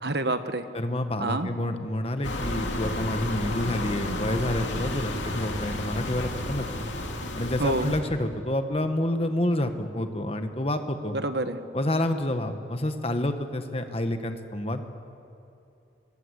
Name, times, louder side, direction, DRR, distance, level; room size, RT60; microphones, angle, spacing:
voice 1, 0.0-0.7 1.2-1.5 7.6-7.9 11.1-11.6, right 2 dB, 60° right, 9 dB, 1.4 m, -27 dB
voice 2, 0.7-6.9 7.4-11.2 11.7-14.8, left 1 dB, 30° left, 7 dB, 1.5 m, -28 dB
sound 1, 2.2-8.0, left 1 dB, 85° left, 2.7 m, -32 dB
25.0 x 21.0 x 8.3 m, 2.8 s
head